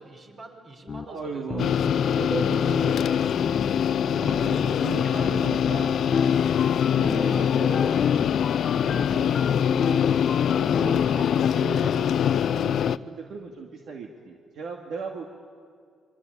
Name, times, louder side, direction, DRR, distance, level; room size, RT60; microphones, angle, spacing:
voice 1, 0.0-1.8 2.1-3.3 4.2-5.9 6.9-8.0, right 3 dB, 45° right, 3 dB, 5.0 m, -43 dB
sound 1, 0.9-1.1 1.5-2.9 3.3-3.8 4.3-4.7 5.2-11.5, left 6 dB, 45° left, 0.9 m, -31 dB
voice 2, 1.1-3.3 4.1-6.0 6.7-7.8 8.7-10.0 10.5-15.3, right 4 dB, 75° right, 1 dB, 2.2 m, -37 dB
sound 2, 1.6-13.0, left 8 dB, 65° left, 0.6 m, -23 dB
27.0 x 24.0 x 8.7 m, 2.2 s
cardioid pair, 90°, 0 cm